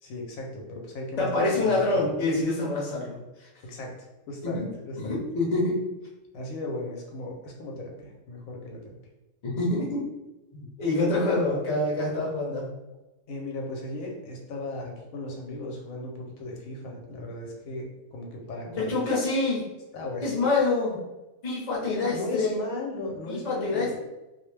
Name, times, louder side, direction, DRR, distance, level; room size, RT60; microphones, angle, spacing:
voice 1, 0.0-2.1 3.6-3.9 4.3-5.2 6.3-9.0 13.3-19.2 19.9-20.3 22.0-24.0, left 1 dB, 85° left, 0 dB, 1.0 m, -36 dB
voice 2, 1.2-3.5 4.4-4.7 5.0-5.9 9.4-10.0 10.5-12.7 18.8-19.6 20.2-21.0 21.4-22.6 23.3-24.0, left 2 dB, 35° left, -4 dB, 0.7 m, -26 dB
2.5 x 2.0 x 3.1 m, 1.0 s
omnidirectional pair, 1.4 m